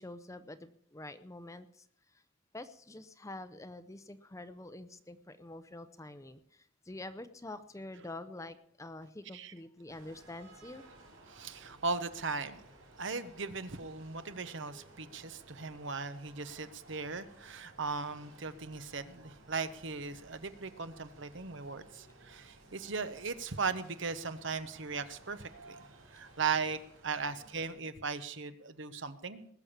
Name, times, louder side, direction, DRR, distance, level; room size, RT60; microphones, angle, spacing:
voice 1, 0.0-1.9 2.1-2.2 2.5-10.8, left 2 dB, 15° left, 11 dB, 0.6 m, -47 dB
sound 1, 9.9-27.7, right 2 dB, 80° right, 5.8 m, -57 dB
voice 2, 11.3-12.6 13.0-25.8 26.1-29.5, right 4 dB, 60° right, 12 dB, 1.0 m, -38 dB
20.0 x 6.9 x 7.3 m, 0.70 s
head